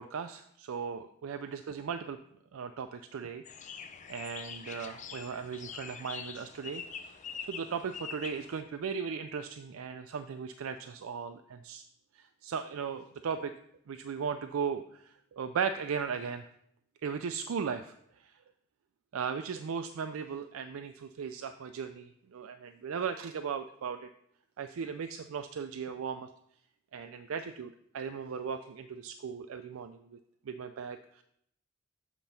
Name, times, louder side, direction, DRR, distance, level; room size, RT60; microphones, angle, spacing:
voice 1, 0.0-2.2 2.5-3.4 4.1-7.1 7.5-11.8 12.2-13.5 13.9-16.5 17.0-17.9 19.1-24.1 24.6-26.3 26.9-30.2 30.5-31.2, right 6 dB, 85° right, 8 dB, 0.4 m, -37 dB
sound 1, 3.4-8.6, left 6 dB, 35° left, 0.5 m, -44 dB
7.3 x 3.9 x 5.7 m, 0.71 s
head